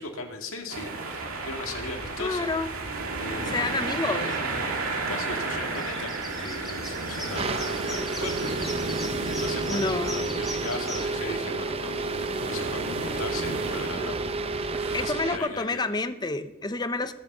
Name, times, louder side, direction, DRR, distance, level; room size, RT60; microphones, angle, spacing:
voice 1, 0.0-2.5 3.2-4.5 5.1-8.8 9.3-14.2 15.0-15.9, left 3 dB, 80° left, 3 dB, 2.0 m, -38 dB
sound 1, 0.7-15.0, right 3 dB, 85° right, 2.2 m, -33 dB
voice 2, 2.2-2.7 3.5-4.3 9.7-10.3 14.9-17.1, left 3 dB, 20° left, 11 dB, 0.7 m, -29 dB
sound 2, 5.6-11.1, equal, ahead, 2.8 m, -40 dB
sound 3, 7.3-15.4, right 3 dB, 30° right, 0.6 m, -31 dB
20.0 x 6.7 x 6.6 m, 1.0 s
head